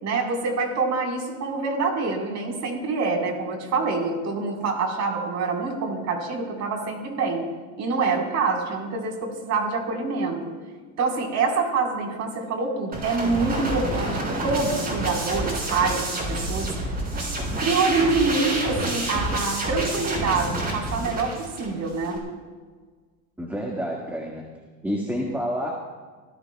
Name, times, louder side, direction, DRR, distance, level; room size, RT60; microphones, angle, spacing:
voice 1, 0.0-7.5 7.8-10.5 11.0-16.7 17.6-22.2, right 4 dB, 40° right, 0 dB, 4.5 m, -26 dB
sound 1, 12.9-22.2, right 1 dB, 20° right, 6.0 m, -28 dB
voice 2, 23.4-24.4 24.8-25.7, equal, 5° right, -2 dB, 2.0 m, -28 dB
26.0 x 17.0 x 2.4 m, 1.5 s
supercardioid pair, 125°, 40 cm